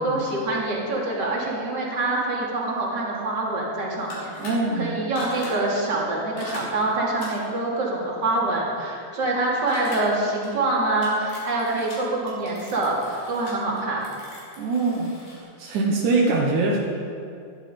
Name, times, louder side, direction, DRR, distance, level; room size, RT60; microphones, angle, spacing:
voice 1, 0.0-14.1, right 2 dB, 25° right, -4 dB, 2.7 m, -25 dB
sound 1, 4.0-4.5 5.2-5.5 6.4-6.6 7.2-7.5 9.7-10.0 10.4-10.5 11.0-11.9 12.3-15.4, left 2 dB, 55° left, 5.3 m, -39 dB
voice 2, 4.4-5.0 14.6-15.2 15.6-16.8, right 3 dB, 85° right, -1 dB, 1.7 m, -23 dB
20.5 x 12.5 x 5.3 m, 2.4 s
omnidirectional pair, 5.6 m